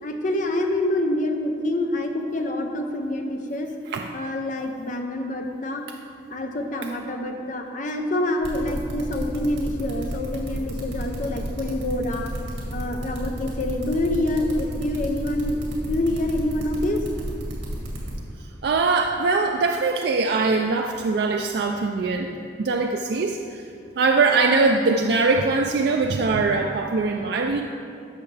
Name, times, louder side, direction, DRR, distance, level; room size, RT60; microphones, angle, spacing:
voice 1, 0.0-3.7 4.1-5.8 6.3-12.3 12.7-17.0, left 1 dB, 45° left, 4 dB, 0.7 m, -26 dB
sound 1, 8.4-18.1, equal, 80° right, 2.1 m, -32 dB
voice 2, 18.6-23.6 24.0-27.6, right 3 dB, 60° right, 3 dB, 0.4 m, -22 dB
13.5 x 5.7 x 3.3 m, 2.5 s
head